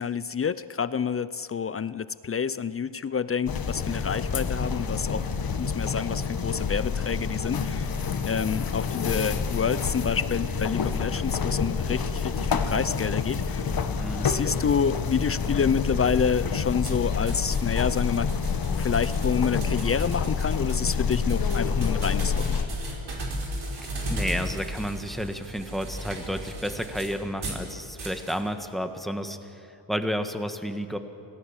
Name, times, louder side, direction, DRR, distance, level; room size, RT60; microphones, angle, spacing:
voice 1, 0.0-7.9 8.2-13.8 14.2-18.3 18.8-22.6, left 6 dB, 30° left, 15 dB, 0.4 m, -28 dB
sound 1, 3.5-22.6, left 5 dB, 50° left, 1.6 m, -28 dB
voice 2, 14.0-14.4 24.1-29.4 29.9-31.0, equal, ahead, 7 dB, 1.4 m, -31 dB
sound 2, 16.8-27.6 28.0-28.4, right 1 dB, 50° right, 4.9 m, -36 dB
25.5 x 18.0 x 7.3 m, 2.5 s
cardioid pair, 110°, 47 cm